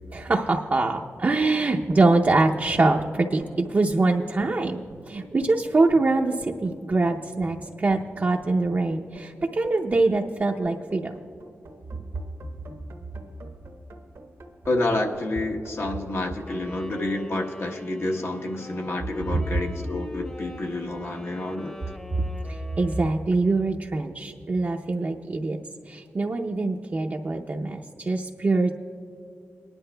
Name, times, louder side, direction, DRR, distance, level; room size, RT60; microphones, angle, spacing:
voice 1, 0.1-4.8 5.1-11.1 22.5-25.6 25.9-28.7, right 3 dB, 40° right, 1 dB, 0.6 m, -24 dB
sound 1, 1.9-18.7, right 1 dB, 75° right, 1.0 m, -46 dB
voice 2, 14.7-21.8, left 2 dB, 60° left, 1 dB, 1.1 m, -29 dB
Wind instrument woodwind instrument, 16.5-23.4, equal, 15° left, 0.9 m, -42 dB
22.5 x 10.5 x 2.2 m, 2.5 s
cardioid pair, 65°, 5 cm